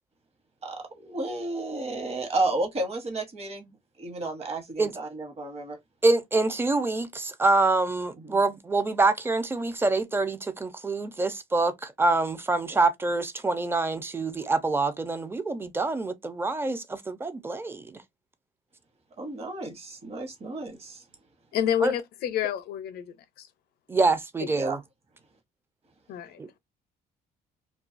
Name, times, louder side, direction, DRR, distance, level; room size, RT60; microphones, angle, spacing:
voice 1, 0.6-5.8 8.2-8.4 19.2-21.0 24.5-24.8, right 2 dB, 35° right, 1.0 m, -32 dB
voice 2, 6.0-17.9 21.8-21.9 23.9-24.8 26.4-26.6, right 3 dB, 15° right, 0.4 m, -26 dB
voice 3, 21.5-23.5 26.1-26.4, left 9 dB, 70° left, 0.5 m, -29 dB
2.3 x 2.3 x 2.5 m
cardioid pair, 110°, 17 cm